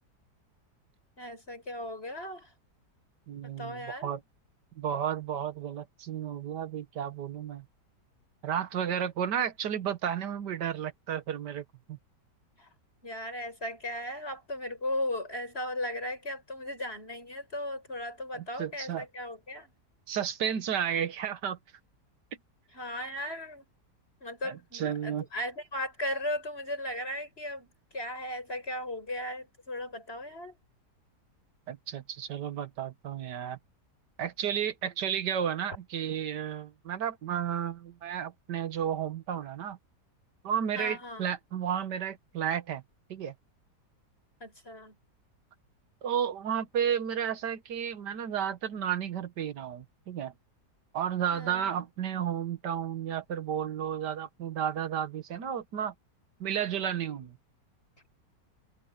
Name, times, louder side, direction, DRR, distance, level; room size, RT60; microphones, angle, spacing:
voice 1, 1.2-2.5 3.4-4.1 12.6-12.7 13.0-19.7 22.7-23.7 24.2-30.6 40.7-41.2 44.4-45.0 51.3-51.9, left 1 dB, 35° left, 6.7 m, -37 dB
voice 2, 3.3-4.2 4.8-7.7 8.4-12.0 18.3-19.1 20.1-21.6 24.4-25.3 31.7-33.6 34.2-39.8 40.4-42.8 43.1-43.3 46.0-50.3 50.9-55.9 56.4-57.4, right 9 dB, 80° right, 1.8 m, -32 dB
open air
omnidirectional pair, 1.8 m